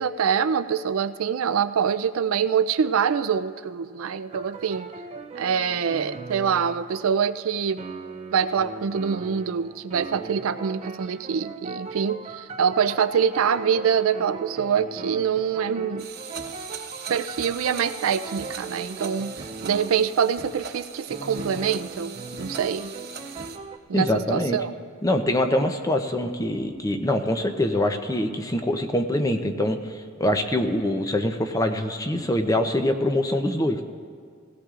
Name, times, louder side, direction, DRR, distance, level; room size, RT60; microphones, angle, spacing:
voice 1, 0.0-4.9 5.4-7.8 8.3-16.1 17.1-19.3 19.6-22.9 23.9-24.7, right 7 dB, 85° right, 12 dB, 0.4 m, -25 dB
sound 1, 4.3-7.1 7.8-20.2 21.1-23.8, right 3 dB, 30° right, 0.5 m, -39 dB
sound 2, 16.0-23.6, right 6 dB, 50° right, 1.1 m, -40 dB
voice 2, 23.9-24.6 25.0-33.8, left 1 dB, 15° left, 6 dB, 0.6 m, -24 dB
18.5 x 16.5 x 2.5 m, 2.1 s
head